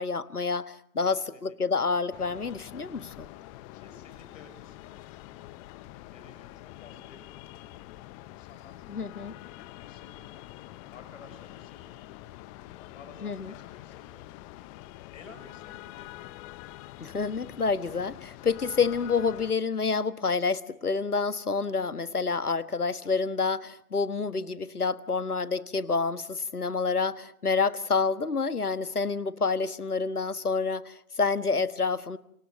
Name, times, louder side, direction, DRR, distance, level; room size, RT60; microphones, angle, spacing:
voice 1, 0.0-3.3 8.9-9.3 13.2-13.5 17.0-32.2, left 4 dB, 90° left, 15 dB, 1.5 m, -28 dB
voice 2, 1.0-1.7 3.7-5.6 6.1-12.1 12.8-14.3 15.1-16.3 20.8-21.0, left 4 dB, 60° left, 8 dB, 7.5 m, -54 dB
sound 1, 2.1-19.5, left 16 dB, 25° left, 1.1 m, -46 dB
29.0 x 29.0 x 6.4 m, 0.74 s
figure-of-eight pair, 125°, 44 cm